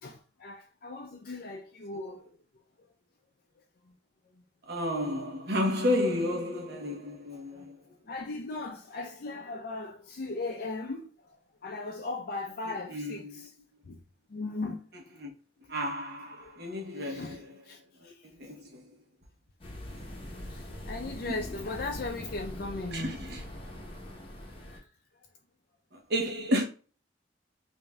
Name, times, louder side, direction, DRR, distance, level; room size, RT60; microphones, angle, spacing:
voice 1, 0.0-2.3 7.5-7.6 8.1-11.1 11.6-13.5 13.9-14.0 14.3-14.9 16.4-16.6 17.0-18.2 20.5-23.1 24.6-24.8, left 3 dB, 50° left, 0.4 m, -38 dB
voice 2, 4.7-7.8 12.9-13.5 15.2-15.3 15.7-17.5 18.0-18.1 18.4-18.8 21.2-21.4 22.9-23.4 26.1-26.6, left 1 dB, 55° right, 0.9 m, -31 dB
sound 1, 19.6-24.8, left 1 dB, 30° left, 0.8 m, -42 dB
5.3 x 2.6 x 2.2 m
head